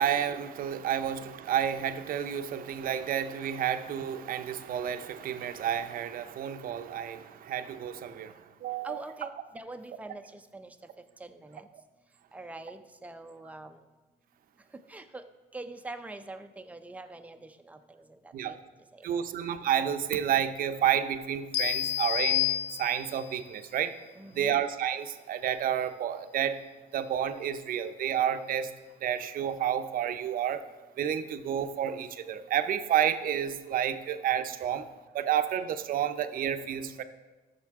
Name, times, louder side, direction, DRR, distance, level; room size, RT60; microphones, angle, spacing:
voice 1, 0.0-8.3 8.6-9.0 18.3-18.5 19.0-22.5 22.8-23.9 24.3-26.6 26.9-28.7 29.0-30.6 31.0-34.8 35.1-37.0, right 9 dB, 55° right, 9 dB, 0.6 m, -30 dB
voice 2, 8.8-10.7 11.2-11.7 12.3-13.8 14.9-15.2 15.5-17.8 18.4-18.6 24.2-24.6, right 2 dB, 10° right, 7 dB, 0.6 m, -43 dB
sound 1, 21.5-23.3, left 12 dB, 70° left, 0.8 m, -29 dB
13.0 x 6.6 x 3.6 m, 1.2 s
cardioid pair, 110°, 17 cm